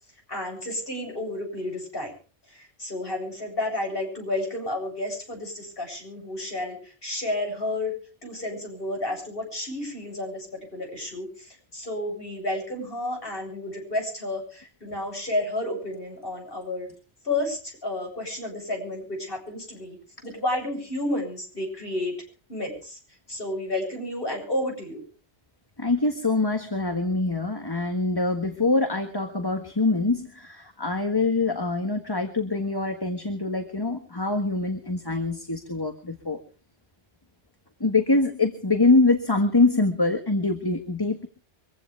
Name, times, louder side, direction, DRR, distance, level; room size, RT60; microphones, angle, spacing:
voice 1, 0.3-2.1 2.5-7.9 8.2-16.9 17.2-20.0 20.2-22.1 22.5-23.0 23.3-25.0, left 1 dB, 55° left, 2 dB, 8.3 m, -31 dB
voice 2, 25.8-36.4 37.8-41.3, left 3 dB, 20° left, 5 dB, 1.6 m, -24 dB
25.0 x 15.5 x 3.5 m, 0.39 s
omnidirectional pair, 1.1 m